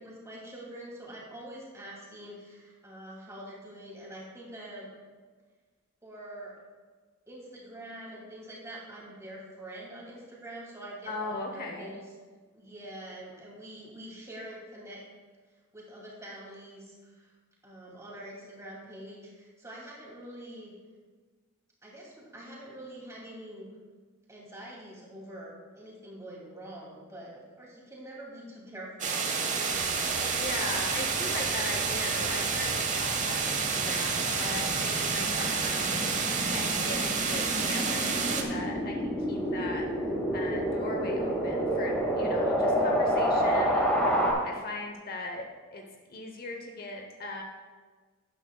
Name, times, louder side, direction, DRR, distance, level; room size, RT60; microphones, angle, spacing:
voice 1, 0.0-4.9 6.0-6.5 7.3-12.0 12.5-15.0 15.7-17.3 17.6-20.7 21.8-23.7 24.3-29.2, right 1 dB, 15° right, -4 dB, 2.6 m, -45 dB
voice 2, 11.1-11.9 30.4-39.8 40.3-45.5 45.7-45.8 46.1-47.4, left 2 dB, 45° left, 2 dB, 0.9 m, -39 dB
sound 1, 29.0-38.4, right 5 dB, 35° right, 0.9 m, -29 dB
sound 2, 29.7-44.3, equal, 5° left, 1.9 m, -30 dB
12.5 x 10.0 x 2.3 m, 1.4 s
head